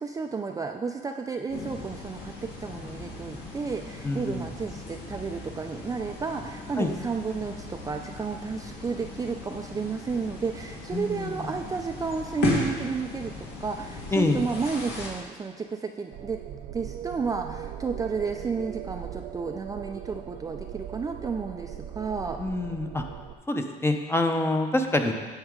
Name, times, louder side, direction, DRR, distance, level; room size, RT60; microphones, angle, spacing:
voice 1, 0.0-16.4 16.7-22.4, right 5 dB, 20° right, 4 dB, 0.4 m, -32 dB
sound 1, 1.5-15.1, left 2 dB, 75° left, 1.9 m, -36 dB
voice 2, 4.0-4.5 6.8-6.9 10.9-11.4 14.1-14.4 22.4-23.0 23.5-25.1, left 2 dB, 15° left, 5 dB, 0.7 m, -26 dB
sound 2, 16.1-23.3, right 10 dB, 75° right, 0.5 m, -39 dB
9.1 x 7.2 x 3.7 m, 1.5 s
cardioid pair, 110°, 17 cm